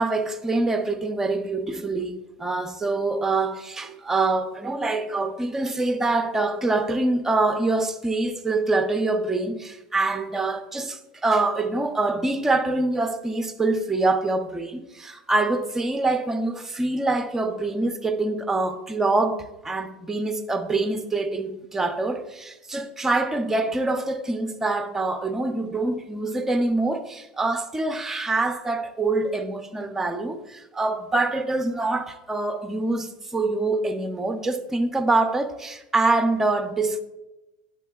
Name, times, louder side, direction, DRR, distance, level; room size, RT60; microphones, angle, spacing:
voice 1, 0.0-37.0, right 2 dB, 10° right, 0.5 m, -25 dB
9.2 x 6.3 x 2.3 m
supercardioid pair, 145°, 5 cm